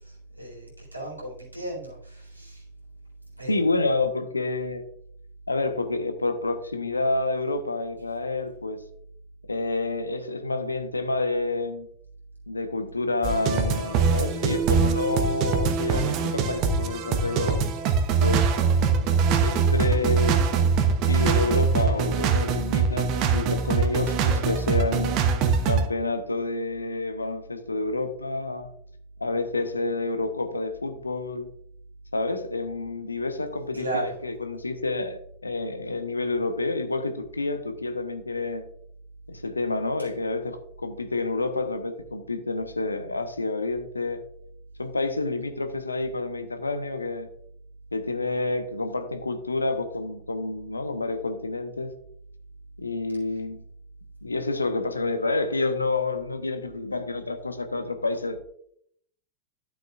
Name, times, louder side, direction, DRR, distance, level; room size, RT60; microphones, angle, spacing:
voice 1, 0.4-2.6 3.4-3.6 33.7-34.0, right 2 dB, 90° right, -4 dB, 4.1 m, -35 dB
voice 2, 3.4-4.8 5.5-8.8 9.5-11.9 12.5-17.6 18.2-18.5 18.8-20.4 21.1-25.2 25.6-28.7 29.2-31.5 32.1-38.6 39.3-44.2 44.8-47.3 47.9-51.9 52.8-53.6 54.2-58.4, left 3 dB, 80° left, 8 dB, 1.0 m, -29 dB
sound 1, 13.2-25.8, right 5 dB, 40° right, 1.0 m, -23 dB
12.0 x 7.6 x 2.4 m, 0.67 s
figure-of-eight pair, 90°, 0 cm